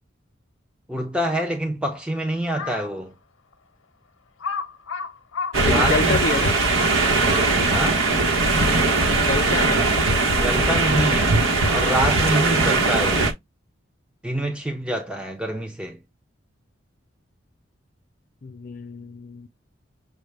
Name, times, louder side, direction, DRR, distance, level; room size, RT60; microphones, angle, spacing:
voice 1, 0.9-3.1 5.6-6.4 7.7-8.1 10.4-11.4 11.7-13.3 14.2-16.0, right 1 dB, 5° right, 0.5 m, -26 dB
Crow, 2.4-2.9 3.5-3.6 4.4-7.8, left 5 dB, 85° left, 0.8 m, -32 dB
sound 1, 5.5-13.3, right 3 dB, 90° right, 1.1 m, -20 dB
voice 2, 5.6-6.6 9.2-9.8 18.4-19.5, left 3 dB, 45° left, 0.5 m, -28 dB
6.4 x 2.2 x 3.3 m
head